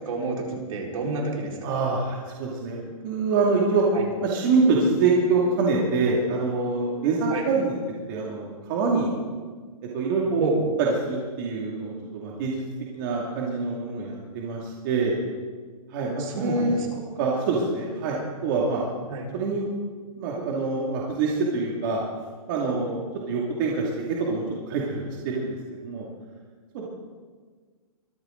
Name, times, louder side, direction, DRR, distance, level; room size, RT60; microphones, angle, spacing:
voice 1, 0.0-1.6 3.9-4.0 7.3-7.4 10.4-10.6 16.2-16.9 19.1-19.2, right 3 dB, 65° right, -1 dB, 4.7 m, -29 dB
voice 2, 1.6-2.8 3.0-3.8 4.2-7.7 8.1-9.1 9.9-10.4 10.8-12.6 12.9-15.2 15.9-16.7 17.2-18.9 19.3-19.7 20.2-22.0 22.5-25.6 25.8-26.1 26.7-26.8, right 4 dB, 35° right, -3 dB, 2.4 m, -25 dB
23.5 x 13.5 x 3.9 m, 1.5 s
hypercardioid pair, 170°, 19 cm